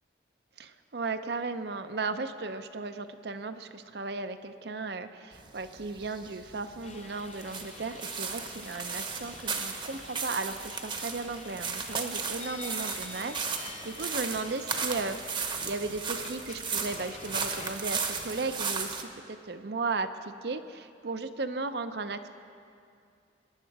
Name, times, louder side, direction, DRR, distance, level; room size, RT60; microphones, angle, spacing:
voice 1, 0.6-22.3, right 3 dB, 60° right, 9 dB, 0.6 m, -36 dB
sound 1, 5.3-19.0, right 5 dB, 25° right, 0.9 m, -35 dB
sound 2, 6.8-17.7, left 5 dB, 35° left, 0.6 m, -48 dB
22.5 x 11.0 x 4.7 m, 2.4 s
head